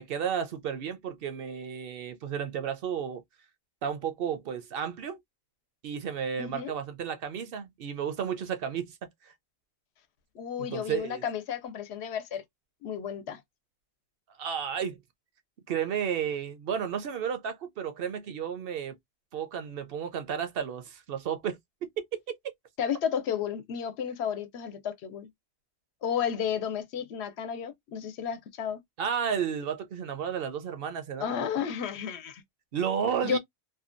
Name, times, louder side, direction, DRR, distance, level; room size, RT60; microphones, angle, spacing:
voice 1, 0.0-3.2 3.8-5.2 5.8-9.0 9.2-9.3 10.6-11.2 14.4-15.0 15.7-19.0 19.3-21.6 22.0-22.4 29.0-31.4 32.7-33.4, right 8 dB, 65° right, 0.7 m, -32 dB
voice 2, 6.4-6.7 10.3-12.4 12.8-13.4 22.8-25.3 26.0-28.8 31.2-32.4 33.2-33.4, left 8 dB, 75° left, 0.9 m, -32 dB
2.7 x 2.2 x 2.4 m
omnidirectional pair, 1.1 m